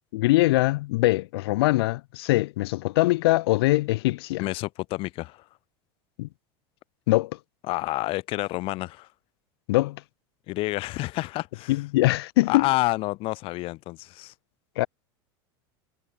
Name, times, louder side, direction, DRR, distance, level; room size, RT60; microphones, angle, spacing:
voice 1, 0.1-4.4 6.2-6.3 7.1-7.3 9.7-10.0 11.7-12.7 14.8-14.9, left 19 dB, 75° left, 4.5 m, -22 dB
voice 2, 4.4-5.4 7.7-9.1 10.5-11.8 12.5-14.3, left 20 dB, 45° left, 5.1 m, -29 dB
supercardioid pair, 155°, 13 cm